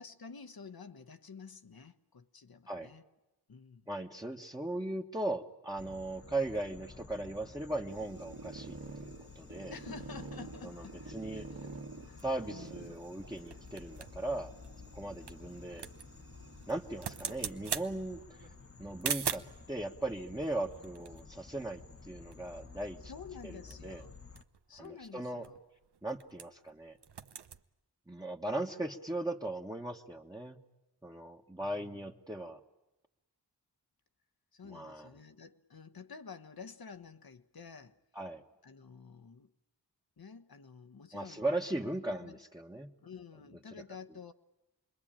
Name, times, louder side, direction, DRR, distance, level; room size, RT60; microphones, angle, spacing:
voice 1, 0.0-3.0 3.5-3.9 9.7-13.0 15.4-15.8 23.1-24.2 24.7-25.6 31.6-32.1 34.5-38.0 38.6-39.5 40.2-41.4 41.8-42.4 43.0-44.3, left 5 dB, 65° left, 1.3 m, -50 dB
voice 2, 3.9-9.7 10.6-10.8 11.1-11.5 12.2-14.5 14.9-15.9 16.7-18.2 18.8-23.0 23.4-24.0 24.8-25.5 26.0-27.0 28.1-30.6 31.0-32.6 34.6-35.1 38.1-38.4 41.1-42.9, right 2 dB, 10° right, 1.4 m, -38 dB
sound 1, 5.8-24.4, left 4 dB, 35° left, 1.3 m, -53 dB
sound 2, 7.9-17.3 18.1-18.6 19.0-19.1 19.4-19.5 20.4-21.5, right 4 dB, 55° right, 2.0 m, -50 dB
sound 3, 12.2-19.6 20.4-22.1 22.3-22.4 22.7-23.0 23.4-26.7 27.0-27.6, right 7 dB, 90° right, 1.0 m, -43 dB
27.5 x 22.0 x 8.9 m
wide cardioid pair, 65°, 39 cm